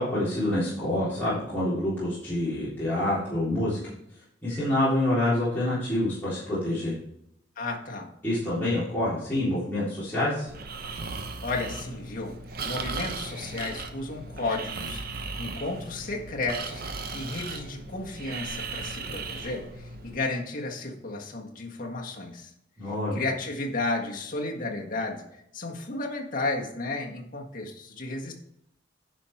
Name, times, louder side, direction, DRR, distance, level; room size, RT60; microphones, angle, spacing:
voice 1, 0.0-3.8 4.4-6.9 8.2-10.5 22.8-23.2, left 1 dB, 10° left, -11 dB, 3.7 m, -27 dB
voice 2, 7.6-8.1 11.4-22.5 23.1-25.3 25.5-28.3, left 2 dB, 45° left, 0 dB, 1.8 m, -33 dB
Breathing, 10.5-20.2, right 3 dB, 50° right, 1.0 m, -37 dB
11.0 x 5.7 x 4.5 m, 0.76 s
head